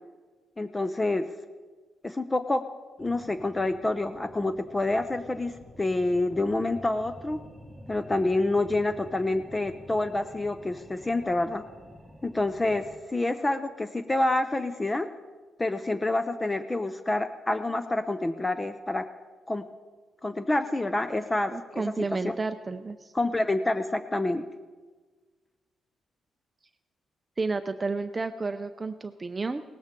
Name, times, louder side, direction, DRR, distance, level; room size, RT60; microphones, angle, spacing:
voice 1, 0.6-1.3 2.0-2.6 3.0-7.4 7.9-11.6 12.2-15.1 15.6-19.1 19.5-19.7 20.2-22.4 23.1-24.4, left 2 dB, 15° left, 10 dB, 0.6 m, -27 dB
sound 1, 3.0-13.0, equal, ahead, 1.4 m, -49 dB
voice 2, 21.5-23.1 27.4-29.6, right 3 dB, 25° right, 9 dB, 0.5 m, -31 dB
17.5 x 13.5 x 3.7 m, 1.4 s
cardioid pair, 100°, 0 cm